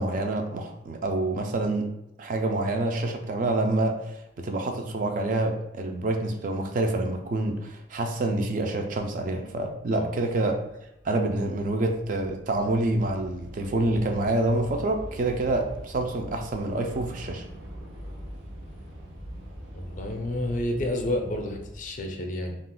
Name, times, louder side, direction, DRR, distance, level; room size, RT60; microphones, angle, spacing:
voice 1, 0.0-1.9 2.2-4.0 4.4-10.6 11.0-17.4, right 2 dB, 45° right, 3 dB, 0.3 m, -27 dB
Train / Subway metro underground, 9.8-22.0, equal, 85° right, 0.7 m, -43 dB
voice 2, 19.7-22.6, left 1 dB, 45° left, 3 dB, 0.4 m, -30 dB
2.4 x 2.1 x 3.7 m, 0.85 s
head